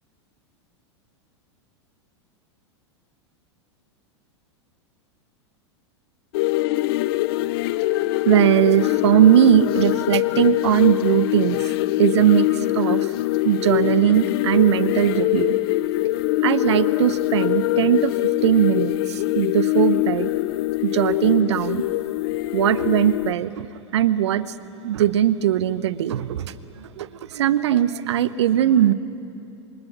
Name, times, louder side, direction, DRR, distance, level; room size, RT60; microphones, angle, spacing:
sound 1, 6.3-23.3, left 18 dB, 55° left, 0.5 m, -23 dB
voice 1, 8.2-11.7 12.0-13.1 13.4-15.6 16.4-20.3 20.8-21.8 22.5-23.7 23.9-24.5 24.8-28.9, right 11 dB, 70° right, 15 dB, 0.9 m, -19 dB
28.0 x 24.5 x 6.1 m, 2.9 s
hypercardioid pair, 95°, 15 cm